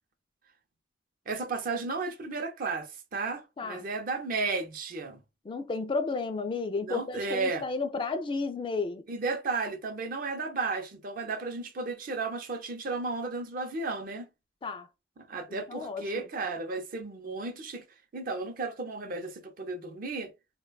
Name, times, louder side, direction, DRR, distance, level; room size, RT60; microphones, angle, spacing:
voice 1, 1.3-5.2 6.8-7.6 9.1-14.3 15.3-17.8 18.1-20.3, right 3 dB, 50° right, 0.5 m, -33 dB
voice 2, 5.4-9.0 14.6-14.9 15.5-16.2, left 4 dB, 30° left, 0.3 m, -32 dB
3.1 x 2.1 x 2.2 m
head